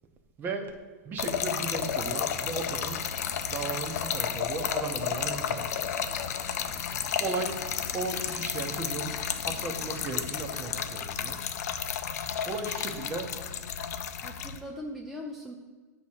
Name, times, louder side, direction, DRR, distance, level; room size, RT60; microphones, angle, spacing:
voice 1, 0.4-0.7 1.0-3.0 3.5-5.9 7.2-7.6 7.9-9.2 9.4-11.4 12.5-13.3, right 4 dB, 25° right, 4 dB, 0.8 m, -35 dB
Trickle dribble / Fill (with liquid), 1.2-14.6, left 8 dB, 70° left, 0.5 m, -32 dB
sound 1, 1.2-10.7, left 3 dB, 25° left, 0.9 m, -47 dB
voice 2, 14.2-15.5, left 1 dB, ahead, -1 dB, 0.4 m, -41 dB
8.4 x 2.9 x 6.3 m, 1.3 s
supercardioid pair, 150°, 9 cm